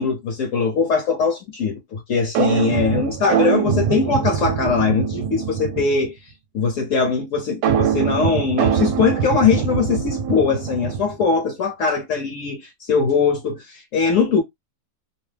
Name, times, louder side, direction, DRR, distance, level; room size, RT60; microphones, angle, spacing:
voice 1, 0.0-6.1 6.5-14.4, left 5 dB, 60° left, 0.9 m, -21 dB
sound 1, 2.3-6.1 7.6-11.2, right 8 dB, 85° right, 1.2 m, -23 dB
2.7 x 2.0 x 3.2 m
omnidirectional pair, 1.7 m